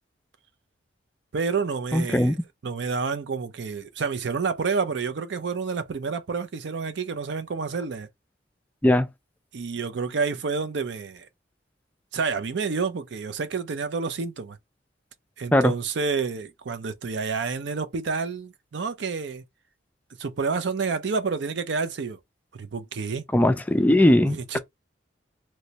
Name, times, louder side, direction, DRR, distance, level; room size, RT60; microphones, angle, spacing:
voice 1, 1.3-2.4 2.6-8.1 9.5-11.3 12.1-14.6 15.4-19.4 20.2-22.2 22.5-23.3 24.2-24.6, right 5 dB, 70° right, 0.5 m, -29 dB
voice 2, 1.9-2.3 8.8-9.1 15.5-15.7 23.3-24.6, left 1 dB, 10° left, 0.3 m, -19 dB
3.1 x 3.0 x 2.8 m
head